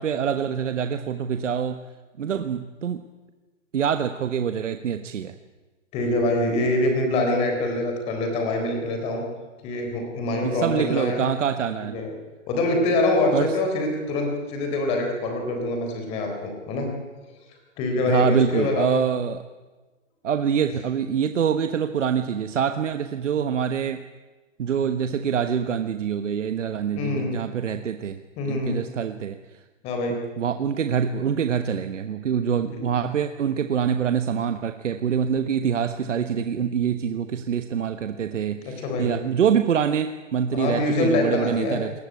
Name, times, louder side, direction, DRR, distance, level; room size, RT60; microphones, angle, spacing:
voice 1, 0.0-1.8 2.2-3.0 3.7-5.3 10.4-12.0 13.3-13.5 18.1-19.4 20.2-24.0 24.6-28.2 28.4-29.6 30.4-41.9, right 7 dB, 70° right, 9 dB, 1.3 m, -25 dB
voice 2, 5.9-9.2 9.6-11.2 11.8-12.1 12.5-16.9 17.5-19.0 26.9-27.3 28.4-28.8 29.8-30.2 32.7-32.9 38.6-39.1 40.5-41.8, left 2 dB, 15° left, 3 dB, 3.9 m, -25 dB
21.5 x 19.5 x 9.6 m, 1.2 s
hypercardioid pair, 175°, 38 cm